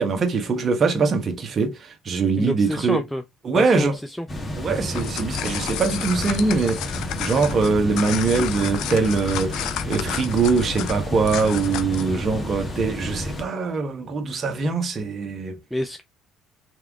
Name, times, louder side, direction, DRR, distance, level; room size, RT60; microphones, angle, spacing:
voice 1, 0.0-3.0 3.4-4.0 4.6-15.6, right 4 dB, 45° right, 1.3 m, -23 dB
voice 2, 2.4-3.2 3.5-4.3 15.7-16.0, equal, 5° left, 0.7 m, -27 dB
sound 1, 4.3-13.4, left 1 dB, 20° left, 1.5 m, -31 dB
sound 2, 4.8-12.1, left 11 dB, 70° left, 0.6 m, -32 dB
3.5 x 3.4 x 3.5 m
supercardioid pair, 75°, 0 cm